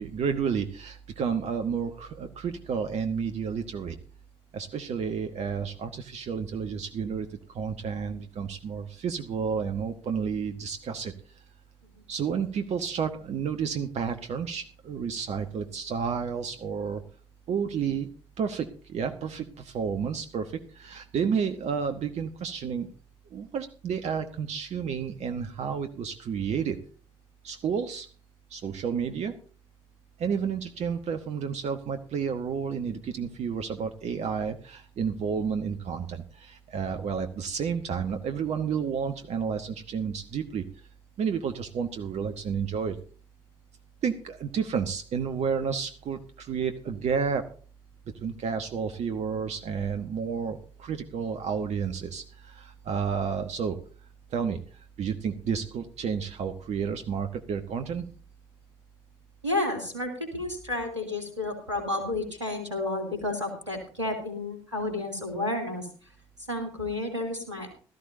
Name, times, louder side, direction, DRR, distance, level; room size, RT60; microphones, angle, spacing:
voice 1, 0.0-4.0 4.5-7.3 7.5-11.1 12.1-17.0 17.5-18.1 18.4-22.9 23.3-26.8 27.4-28.1 28.5-29.3 30.2-40.6 41.2-43.0 44.0-47.4 48.2-53.8 54.3-58.1, right 6 dB, 50° right, 7 dB, 1.2 m, -31 dB
voice 2, 59.4-66.1 66.5-67.7, left 2 dB, 90° right, 3 dB, 2.8 m, -31 dB
17.0 x 13.5 x 2.7 m, 0.41 s
figure-of-eight pair, 45°, 15 cm